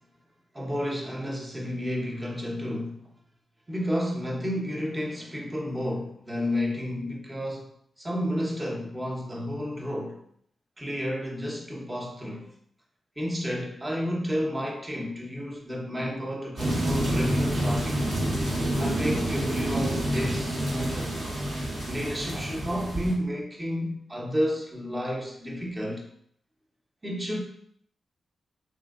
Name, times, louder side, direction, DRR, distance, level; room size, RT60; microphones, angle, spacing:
voice 1, 0.5-3.1 3.7-7.7 8.0-10.2 10.8-12.5 13.2-18.1 18.8-21.1 21.9-26.0 27.0-27.4, equal, 25° right, -1 dB, 0.8 m, -31 dB
sound 1, 16.6-23.1, right 1 dB, 80° right, 1.1 m, -28 dB
2.9 x 2.6 x 2.4 m, 0.68 s
supercardioid pair, 45°, 0 cm